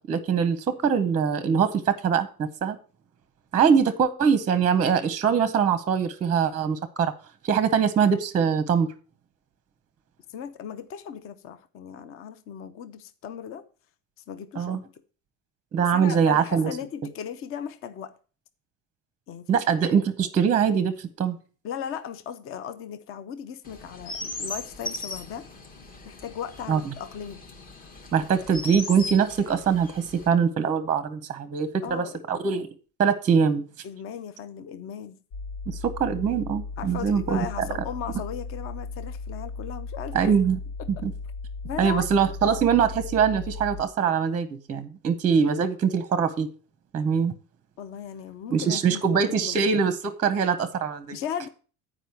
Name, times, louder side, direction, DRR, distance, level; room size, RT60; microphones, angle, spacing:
voice 1, 0.0-2.8 3.5-7.1 7.4-8.9 14.6-14.8 15.7-16.7 19.5-21.4 26.7-26.8 28.1-32.7 33.0-33.6 35.7-37.7 40.1-40.6 41.0-41.1 41.8-46.5 46.9-47.3 48.5-51.2, right 7 dB, 25° right, 0.7 m, -23 dB
voice 2, 10.3-13.6 14.3-14.9 15.8-18.1 19.3-19.6 21.6-25.5 26.0-27.4 31.8-32.2 33.8-35.2 36.8-40.3 40.8-41.0 41.6-42.1 47.8-49.6 51.1-51.5, left 8 dB, 45° left, 0.7 m, -37 dB
Chirp tweet, 23.6-30.3, left 2 dB, 25° left, 1.0 m, -38 dB
sound 1, 35.3-43.8, left 4 dB, 90° left, 1.2 m, -36 dB
9.2 x 5.0 x 7.0 m
cardioid pair, 175°, 32 cm